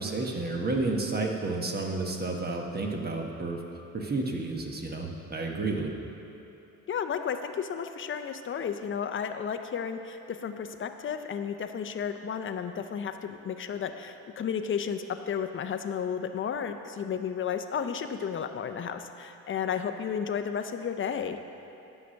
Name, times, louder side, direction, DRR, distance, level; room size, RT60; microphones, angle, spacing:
voice 1, 0.0-3.6 3.9-5.9, right 3 dB, 30° right, 1 dB, 1.2 m, -31 dB
voice 2, 6.9-21.4, left 7 dB, 40° left, 8 dB, 0.6 m, -33 dB
9.5 x 5.9 x 6.3 m, 2.9 s
cardioid pair, 90°, 30 cm